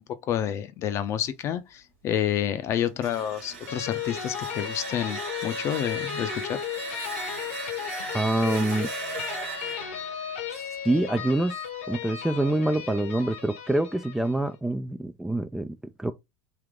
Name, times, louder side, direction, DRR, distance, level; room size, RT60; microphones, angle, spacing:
voice 1, 0.0-6.6, left 10 dB, 40° left, 0.6 m, -29 dB
sound 1, 2.9-11.7, right 5 dB, 70° right, 1.1 m, -39 dB
sound 2, 3.7-14.4, left 7 dB, 75° left, 1.0 m, -35 dB
voice 2, 8.1-8.9 10.8-11.6 11.9-16.1, right 1 dB, 5° right, 0.3 m, -26 dB
3.5 x 2.8 x 3.7 m
figure-of-eight pair, 80°, 7 cm